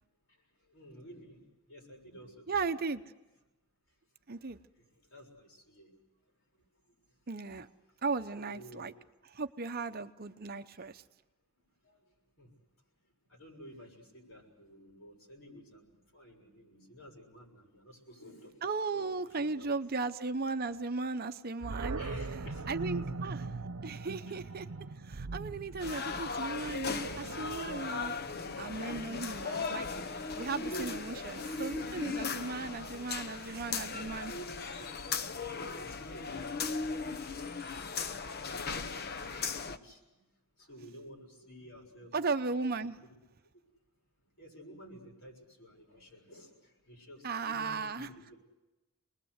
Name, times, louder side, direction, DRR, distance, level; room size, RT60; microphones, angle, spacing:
voice 1, 0.3-2.7 4.7-5.9 6.5-7.3 8.4-9.0 10.8-10.9 11.8-12.5 13.0-19.7 21.9-23.5 24.3-24.7 34.1-34.9 35.3-38.0 38.4-40.2 40.5-42.5 42.8-42.9 43.5-43.6 44.4-48.3, equal, 65° left, 1 dB, 6.9 m, -53 dB
voice 2, 2.5-3.0 4.3-4.6 7.3-7.7 8.0-8.9 9.3-10.9 18.6-22.0 22.7-23.4 23.8-24.6 25.1-28.1 28.6-29.9 30.4-34.3 42.1-42.9 47.2-48.1, right 4 dB, 45° right, 9 dB, 0.8 m, -36 dB
Animal, 21.6-28.7, right 3 dB, 80° right, 0.8 m, -41 dB
sound 1, 25.8-39.8, left 4 dB, 45° left, 0.9 m, -37 dB
28.0 x 20.5 x 8.0 m, 1.1 s
head